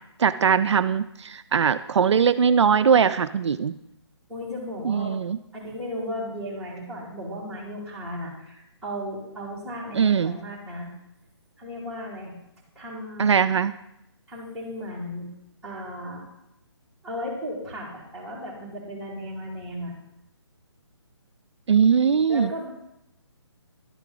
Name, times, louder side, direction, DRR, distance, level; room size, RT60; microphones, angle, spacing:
voice 1, 0.2-3.8 4.8-5.4 9.9-10.4 13.2-13.7 21.7-22.5, right 7 dB, 75° right, 12 dB, 0.4 m, -21 dB
voice 2, 4.3-5.2 5.5-10.9 11.6-12.3 12.7-13.4 14.3-15.3 15.6-16.2 17.0-20.0 22.3-22.7, equal, 5° right, -11 dB, 2.5 m, -35 dB
11.5 x 4.6 x 3.8 m, 0.81 s
hypercardioid pair, 160°, 15 cm